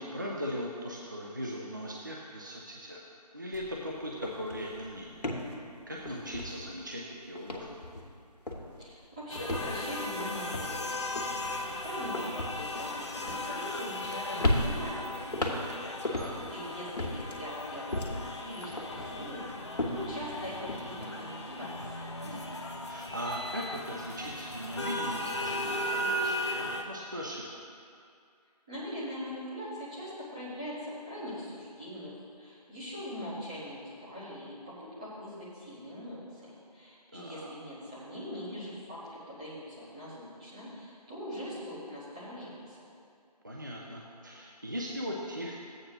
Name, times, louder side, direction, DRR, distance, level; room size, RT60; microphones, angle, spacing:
voice 1, 0.0-3.0 3.3-5.2 5.9-7.9 16.0-16.4 22.2-27.4 37.1-37.5 43.4-45.6, equal, 30° right, -2 dB, 0.5 m, -39 dB
sound 1, 3.5-3.7 4.0-7.0 7.4-8.2 8.5-8.9 9.4-14.1 14.4-16.6 17.0-18.4 18.8-20.8, left 1 dB, 75° left, 1.5 m, -35 dB
voice 2, 8.8-11.1 11.5-15.6 15.8-22.1 28.7-32.1 32.4-42.8, equal, 10° right, -11 dB, 1.3 m, -42 dB
sound 2, 9.3-26.8, left 1 dB, 40° left, 0.7 m, -37 dB
13.0 x 8.7 x 2.9 m, 2.4 s
figure-of-eight pair, 175°, 21 cm